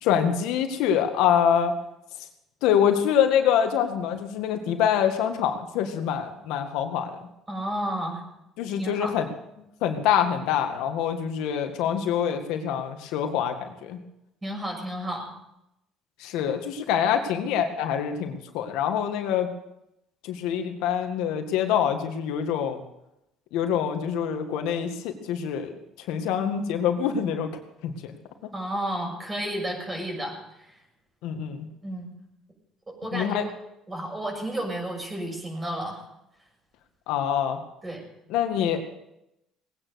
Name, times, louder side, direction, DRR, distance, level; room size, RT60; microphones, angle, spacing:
voice 1, 0.0-1.7 2.6-7.1 8.6-9.3 9.8-14.0 16.2-19.5 20.2-22.8 23.5-25.7 26.1-27.5 27.8-28.1 31.2-31.7 33.1-33.4 37.1-37.6 38.3-38.8, left 8 dB, 80° left, 6 dB, 1.9 m, -25 dB
voice 2, 7.5-8.2 8.7-9.1 14.4-15.3 28.5-30.7 31.8-32.1 32.9-33.5 33.9-36.0 37.8-38.0, right 1 dB, 20° right, 1 dB, 6.4 m, -32 dB
19.5 x 9.5 x 6.5 m, 0.86 s
supercardioid pair, 90°, 0 cm